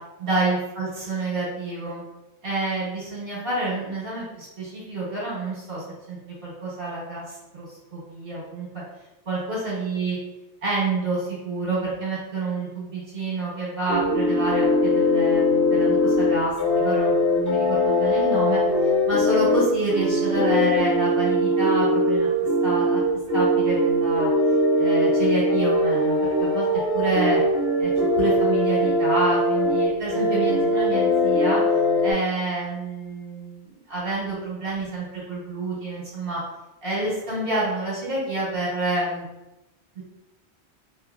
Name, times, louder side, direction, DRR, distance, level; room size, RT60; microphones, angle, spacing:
voice 1, 0.2-2.0 2.4-6.2 6.4-8.7 9.3-10.2 10.6-18.6 19.1-22.3 22.6-23.0 23.3-24.3 24.8-26.7 26.9-27.4 27.8-27.9 28.2-31.6 32.0-33.6 33.9-36.4 36.8-39.2 39.9-40.0, right 2 dB, 55° right, -7 dB, 1.2 m, -28 dB
sound 1, 13.9-32.1, left 1 dB, 15° right, 0.8 m, -21 dB
2.7 x 2.5 x 2.3 m, 0.99 s
omnidirectional pair, 1.2 m